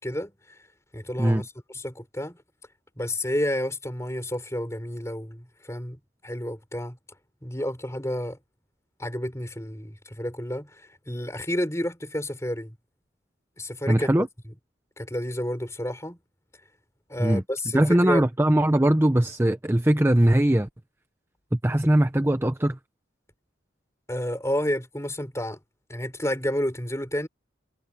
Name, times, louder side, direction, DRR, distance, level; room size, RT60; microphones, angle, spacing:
voice 1, 0.0-0.6 0.9-2.4 3.0-7.0 7.4-8.4 9.0-12.8 13.6-14.3 15.0-16.2 17.1-18.2 24.1-25.6 25.9-27.3, left 1 dB, 15° left, 6.1 m, -30 dB
voice 2, 13.9-14.3 17.2-17.4 17.7-20.7 21.5-22.8, right 1 dB, 10° right, 0.6 m, -21 dB
head